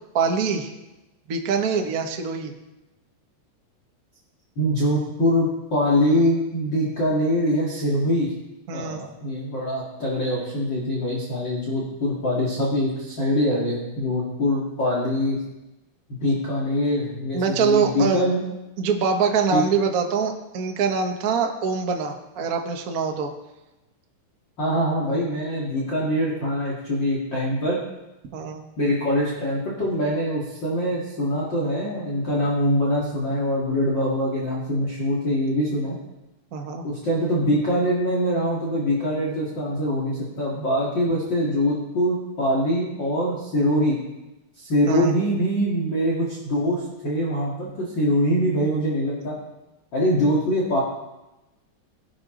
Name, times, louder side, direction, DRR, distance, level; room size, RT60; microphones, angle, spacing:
voice 1, 0.1-0.7 1.3-2.5 8.7-9.1 17.3-18.2 18.8-23.3 28.3-28.6 36.5-36.8 44.9-45.1, right 5 dB, 90° right, 3 dB, 0.7 m, -24 dB
voice 2, 4.6-8.3 8.7-15.4 16.2-18.4 19.5-19.6 24.6-27.8 28.8-36.0 36.8-44.0 44.6-49.4 49.9-50.8, equal, 40° left, -5 dB, 2.6 m, -23 dB
19.5 x 11.5 x 3.9 m, 1.0 s
omnidirectional pair, 3.6 m